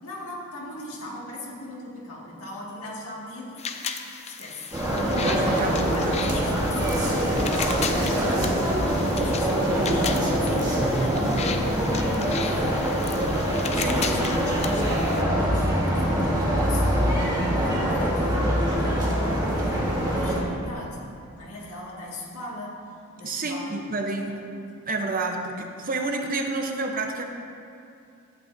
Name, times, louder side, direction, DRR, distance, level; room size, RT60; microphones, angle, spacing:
voice 1, 0.0-3.7 4.3-4.7 5.0-8.6 9.1-11.2 12.4-17.2 17.5-21.0 21.4-23.8 24.2-24.6, left 1 dB, 80° left, -5 dB, 2.0 m, -39 dB
sound 1, 3.6-15.2, left 6 dB, 30° left, 0.4 m, -36 dB
sound 2, 4.7-20.4, equal, 20° right, 1.4 m, -24 dB
voice 2, 5.1-6.3 10.7-10.9 13.7-14.5 23.2-24.4 24.9-27.2, right 2 dB, 40° right, 3 dB, 0.8 m, -30 dB
12.0 x 8.5 x 2.7 m, 2.6 s
head